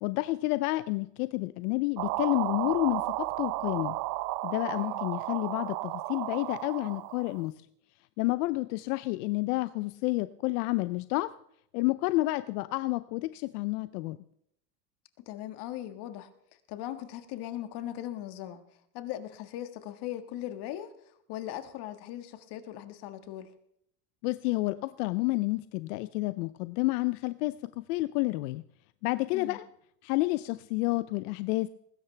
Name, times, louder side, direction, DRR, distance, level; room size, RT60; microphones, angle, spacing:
voice 1, 0.0-4.0 4.4-7.5 8.2-11.3 11.7-14.2 24.2-28.6 29.0-29.7 30.0-31.7, left 21 dB, 70° left, 0.7 m, -30 dB
sound 1, 2.0-7.4, right 18 dB, 50° right, 0.6 m, -33 dB
voice 2, 15.2-16.3 16.7-18.6 18.9-20.9 21.3-23.5 29.3-29.6, left 12 dB, 55° left, 1.8 m, -39 dB
20.0 x 16.0 x 3.4 m
supercardioid pair, 115°, 47 cm